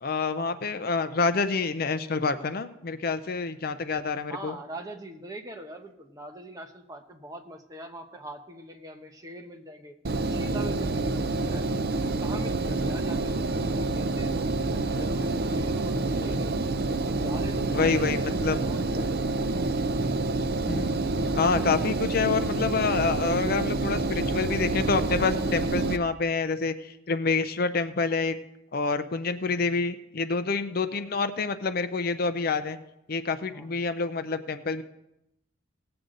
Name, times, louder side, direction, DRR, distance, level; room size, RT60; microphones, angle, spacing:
voice 1, 0.0-4.5 17.7-18.6 20.7-21.0 21.4-28.4 28.7-32.8 33.1-34.8, left 4 dB, 50° left, 11 dB, 0.5 m, -27 dB
voice 2, 4.3-10.0 10.3-14.3 14.7-16.6 17.1-19.4 33.5-33.8, right 1 dB, 20° right, 4 dB, 1.0 m, -42 dB
Engine, 10.0-26.0, right 2 dB, 50° right, 0.5 m, -28 dB
18.5 x 7.8 x 3.9 m, 0.86 s
head